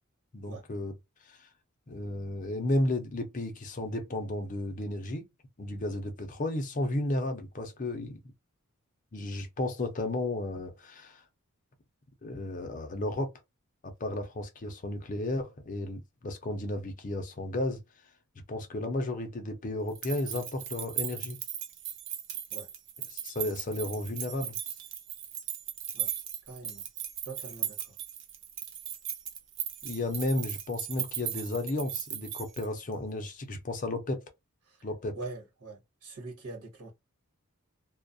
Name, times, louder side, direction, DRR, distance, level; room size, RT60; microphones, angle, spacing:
voice 1, 0.3-0.9 1.2-1.5 1.9-5.3 5.6-8.2 9.1-11.2 12.2-13.3 13.8-17.8 18.5-21.4 23.1-24.6 29.8-34.2 34.8-35.2, left 1 dB, 35° left, 0.5 m, -33 dB
sound 1, 19.9-32.9, right 10 dB, 55° right, 0.5 m, -37 dB
voice 2, 26.4-26.8 27.3-27.9 34.6-34.8 35.1-36.9, right 3 dB, 90° right, 1.1 m, -43 dB
2.3 x 2.1 x 2.5 m
head